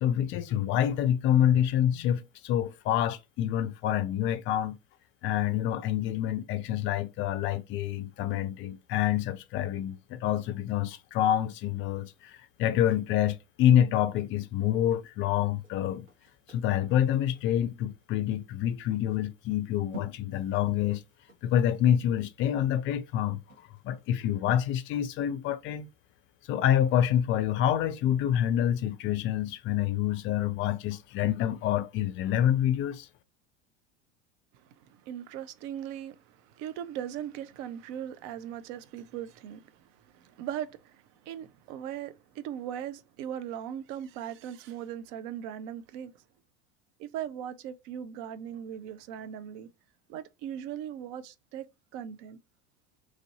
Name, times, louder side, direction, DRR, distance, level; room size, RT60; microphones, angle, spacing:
voice 1, 0.0-4.8 5.2-12.3 12.6-16.1 16.5-21.0 21.4-23.4 23.8-25.9 26.5-33.1, left 10 dB, 35° left, 0.4 m, -27 dB
sound 1, 15.6-24.1 24.5-24.6, right 1 dB, 75° right, 1.4 m, -51 dB
voice 2, 34.5-46.2 47.0-49.7 50.1-51.7 51.9-52.4, right 10 dB, 45° right, 0.5 m, -39 dB
3.1 x 2.5 x 2.7 m
figure-of-eight pair, 75°, 35 cm